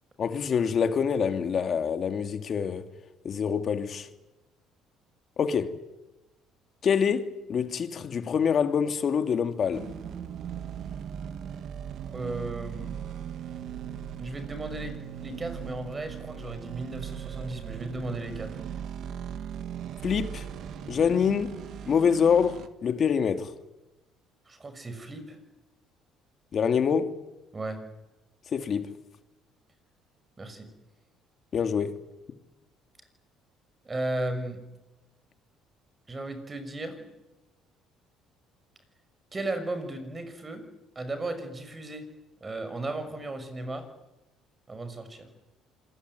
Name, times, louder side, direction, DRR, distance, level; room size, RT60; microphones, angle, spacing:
voice 1, 0.2-2.9 3.2-4.1 5.4-5.8 6.8-9.9 20.0-20.4 20.9-23.5 26.5-27.1 28.5-28.9 31.5-32.0, left 7 dB, 40° left, 2.6 m, -26 dB
sound 1, 9.7-22.7, right 9 dB, 55° right, 2.0 m, -38 dB
voice 2, 12.1-12.9 14.2-14.9 15.2-18.6 24.5-25.4 27.5-27.8 30.4-30.7 33.8-34.6 36.1-36.9 39.3-40.6 40.9-42.0 42.4-43.8 44.7-45.3, right 2 dB, 20° right, 6.2 m, -35 dB
27.0 x 22.0 x 9.5 m
cardioid pair, 125°, 0 cm